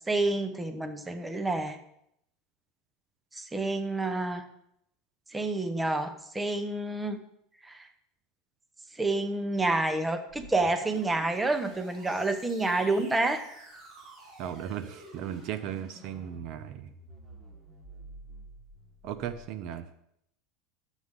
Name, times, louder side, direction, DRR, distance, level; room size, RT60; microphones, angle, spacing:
voice 1, 0.1-1.8 3.3-4.4 5.3-7.2 7.7-7.8 9.0-13.4, right 2 dB, 10° right, 8 dB, 1.0 m, -28 dB
sound 1, 10.3-19.5, right 2 dB, 30° right, 3.9 m, -50 dB
voice 2, 14.4-16.9 19.0-19.8, right 9 dB, 55° right, 11 dB, 0.7 m, -36 dB
12.0 x 8.1 x 3.7 m, 0.75 s
supercardioid pair, 135°, 0 cm